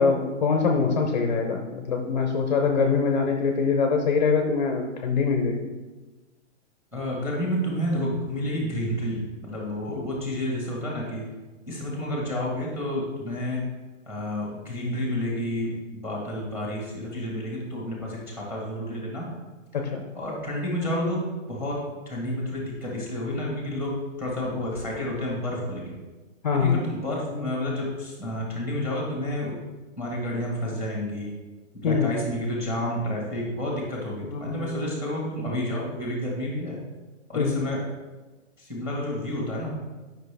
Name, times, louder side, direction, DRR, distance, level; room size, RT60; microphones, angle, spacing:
voice 1, 0.0-5.7 9.9-10.0 19.7-20.0 26.4-26.8 31.8-32.1 34.3-34.7 37.3-37.6, left 5 dB, 35° left, 3 dB, 0.6 m, -24 dB
voice 2, 6.9-11.3 11.7-13.6 14.1-15.8 16.0-19.3 20.1-25.8 26.5-29.5 30.0-31.3 31.7-36.8 37.3-37.8 38.6-39.8, left 1 dB, 5° right, -3 dB, 1.4 m, -30 dB
9.1 x 5.8 x 3.4 m, 1.2 s
hypercardioid pair, 175°, 38 cm